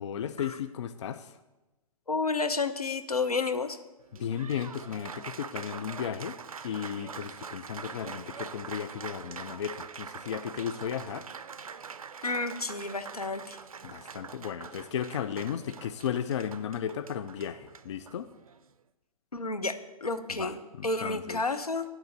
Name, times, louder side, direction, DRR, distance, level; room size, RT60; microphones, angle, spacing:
voice 1, 0.0-1.3 4.2-6.4 6.6-11.3 13.8-18.3 20.3-21.4, left 8 dB, 50° left, 11 dB, 0.4 m, -35 dB
voice 2, 2.1-3.8 12.2-13.6 19.3-21.8, left 3 dB, 85° left, 8 dB, 0.7 m, -31 dB
Applause, 4.0-18.7, right 6 dB, 70° right, 0.4 m, -44 dB
10.0 x 3.7 x 6.4 m, 1.1 s
figure-of-eight pair, 115°, 19 cm